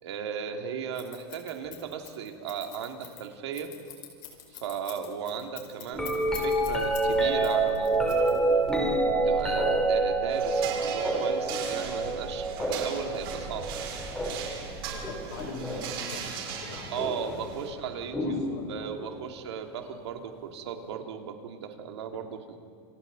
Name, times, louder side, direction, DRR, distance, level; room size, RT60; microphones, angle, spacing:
voice 1, 0.0-3.7 4.5-8.7 9.1-13.7 16.9-22.6, right 7 dB, 80° right, 4 dB, 2.5 m, -36 dB
Scissors, 0.9-7.1 7.4-8.7, left 16 dB, 50° left, 5.0 m, -44 dB
sound 1, 5.9-16.0 17.0-17.4 18.1-19.1 20.9-21.0, right 2 dB, 5° left, 3.1 m, -28 dB
sound 2, 10.3-17.7, right 6 dB, 60° right, 5.4 m, -39 dB
voice 2, 14.9-17.5 18.2-18.9, left 4 dB, 80° left, 2 dB, 5.2 m, -42 dB
29.0 x 28.0 x 4.0 m, 2.3 s
supercardioid pair, 175°, 14 cm